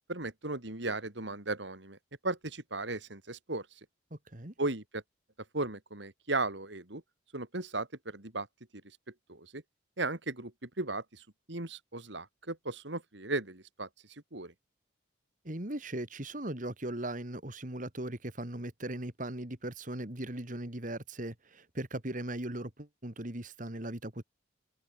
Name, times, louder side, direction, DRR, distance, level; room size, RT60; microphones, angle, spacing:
voice 1, 0.1-2.0 2.2-3.6 4.6-5.0 5.5-7.0 7.3-8.5 9.3-9.6 10.0-10.5 10.8-11.2 11.5-13.9 14.3-14.5, right 2 dB, 70° right, 3.0 m, -36 dB
voice 2, 4.1-4.5 15.4-24.2, right 1 dB, 45° right, 2.5 m, -38 dB
head